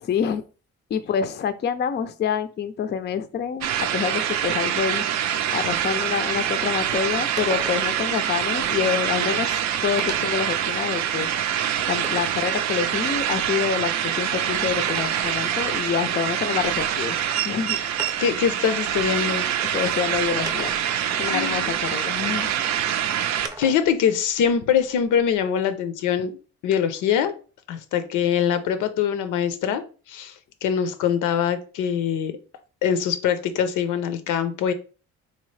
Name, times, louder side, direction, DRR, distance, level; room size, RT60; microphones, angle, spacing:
voice 1, 0.1-0.4 0.9-5.0 5.5-11.3 11.9-17.2 17.4-17.8 19.6-20.7 21.1-22.5, left 7 dB, 35° left, 11 dB, 0.4 m, -27 dB
sound 1, 3.6-23.5, right 10 dB, 65° right, 0.5 m, -25 dB
sound 2, 6.4-6.5 6.9-7.0 7.4-8.1 9.2-9.3 10.0-10.5 11.0-12.4 14.7-15.6 17.1-17.2 18.0-18.4 19.4-19.5 20.5-21.1 23.4-23.9 24.3-25.4, right 1 dB, 15° right, 0.6 m, -38 dB
voice 2, 18.2-19.5 21.2-21.7 23.6-26.4 26.6-27.3 27.7-29.8 30.1-30.3 30.6-32.3 32.8-34.7, left 8 dB, 85° left, 10 dB, 0.6 m, -23 dB
3.6 x 2.7 x 3.2 m, 0.36 s
cardioid pair, 90°, 30 cm